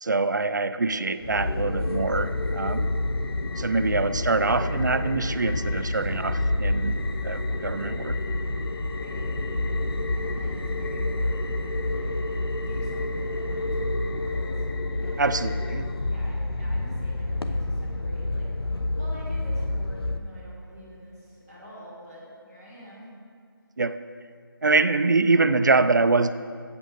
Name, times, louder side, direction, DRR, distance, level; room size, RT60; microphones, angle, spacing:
voice 1, 0.0-2.9 3.6-8.2 15.2-15.8 23.8-24.0 24.6-26.3, right 3 dB, 50° right, 12 dB, 0.4 m, -24 dB
sound 1, 1.2-20.2, left 2 dB, 80° left, 0.8 m, -28 dB
voice 2, 9.0-12.1 12.6-15.5 16.0-18.5 19.0-23.1, equal, 10° left, -9 dB, 1.2 m, -46 dB
8.4 x 7.3 x 6.4 m, 2.2 s
figure-of-eight pair, 180°, 13 cm